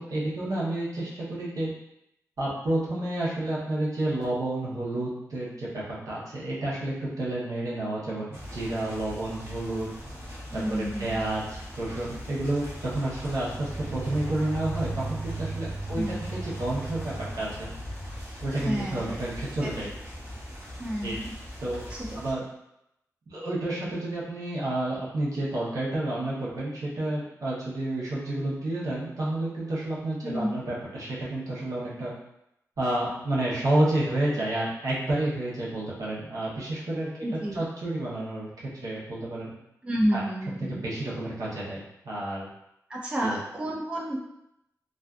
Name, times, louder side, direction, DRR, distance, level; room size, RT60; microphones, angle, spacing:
voice 1, 0.0-1.7 2.4-9.9 10.5-17.7 18.4-19.9 21.0-21.2 21.6-21.8 22.1-22.4 23.3-32.1 32.8-38.5 38.8-39.5 40.1-40.2 40.7-42.5 43.2-43.4, right 1 dB, 70° right, -7 dB, 0.8 m, -30 dB
sound 1, 8.3-22.3, right 1 dB, 40° right, 0.8 m, -38 dB
voice 2, 10.5-11.2 15.9-16.2 18.6-19.1 19.6-19.7 20.8-21.3 21.9-22.2 30.2-30.6 37.2-37.6 39.8-40.8 42.9-44.2, equal, 20° right, -3 dB, 0.3 m, -30 dB
sound 2, 13.3-18.5, equal, 80° left, 0.6 m, -46 dB
2.4 x 2.4 x 2.3 m, 0.83 s
wide cardioid pair, 150°, 6 cm